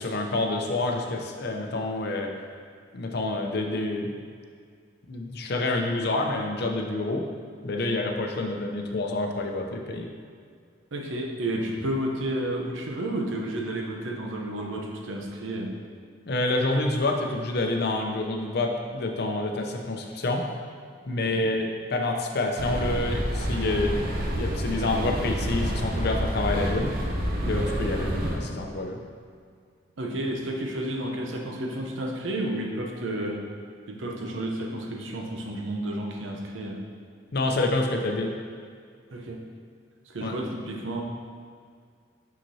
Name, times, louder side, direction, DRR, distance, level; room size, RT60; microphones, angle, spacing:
voice 1, 0.0-2.3 2.9-4.1 5.1-7.2 7.6-10.1 16.3-20.5 21.1-26.9 27.4-29.0 37.3-38.3 40.2-40.3, left 2 dB, 55° left, 2 dB, 0.6 m, -28 dB
voice 2, 10.9-15.8 21.2-21.4 30.0-33.4 33.9-36.8 39.1-39.4 40.1-41.0, right 1 dB, 85° right, 1 dB, 0.8 m, -31 dB
sound 1, 22.6-28.4, equal, 50° right, 0.8 m, -28 dB
6.0 x 5.8 x 2.8 m, 2.1 s
head